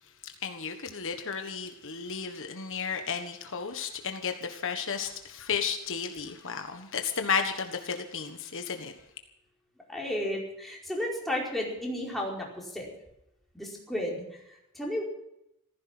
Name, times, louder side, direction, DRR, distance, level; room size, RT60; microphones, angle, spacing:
voice 1, 0.4-8.9, left 6 dB, 60° left, 6 dB, 1.5 m, -33 dB
voice 2, 9.9-12.9 13.5-14.2 14.7-15.0, left 1 dB, ahead, -3 dB, 4.9 m, -33 dB
15.5 x 15.0 x 6.1 m, 0.82 s
head